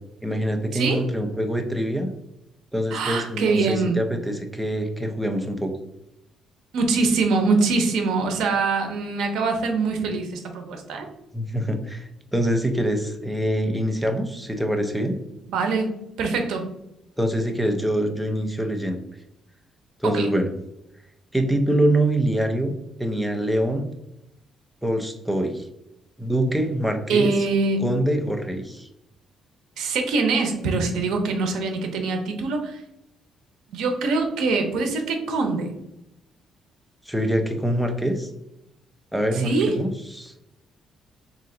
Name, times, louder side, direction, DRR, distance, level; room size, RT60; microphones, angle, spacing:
voice 1, 0.2-2.1 2.7-5.7 11.3-15.2 17.2-19.0 20.0-20.5 21.3-22.7 23.0-23.9 24.8-25.7 26.2-27.3 27.8-28.9 37.1-38.3 39.1-40.3, right 1 dB, ahead, 4 dB, 0.4 m, -24 dB
voice 2, 0.7-1.0 2.9-4.0 6.7-11.1 15.5-15.9 16.2-16.7 20.0-20.3 27.1-27.8 29.8-32.8 33.7-35.8 39.3-39.7, right 4 dB, 85° right, 5 dB, 0.7 m, -23 dB
3.3 x 2.9 x 3.7 m, 0.84 s
cardioid pair, 170°, 0 cm